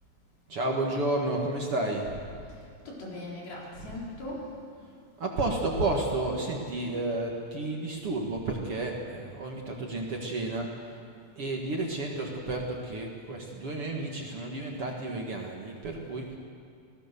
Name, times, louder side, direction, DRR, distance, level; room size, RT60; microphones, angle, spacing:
voice 1, 0.5-2.2 5.2-11.0 11.4-16.4, right 2 dB, 45° right, 0 dB, 2.3 m, -31 dB
voice 2, 2.9-4.5, left 1 dB, 80° left, -4 dB, 6.6 m, -39 dB
28.5 x 18.0 x 6.9 m, 2.3 s
omnidirectional pair, 4.3 m